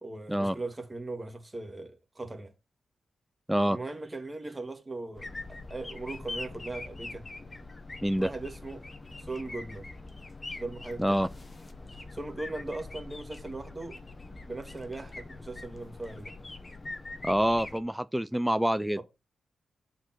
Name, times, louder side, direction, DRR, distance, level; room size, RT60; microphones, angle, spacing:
voice 1, 0.0-2.5 3.7-7.2 8.2-8.9 9.2-9.9 10.6-11.2 12.1-14.0 14.5-16.3 19.0-19.1, right 2 dB, 20° right, 2.1 m, -39 dB
sound 1, 5.1-17.8, left 2 dB, 25° left, 1.2 m, -43 dB
voice 2, 17.2-19.0, equal, 5° right, 0.4 m, -26 dB
7.7 x 4.5 x 5.9 m
cardioid pair, 85°, 0 cm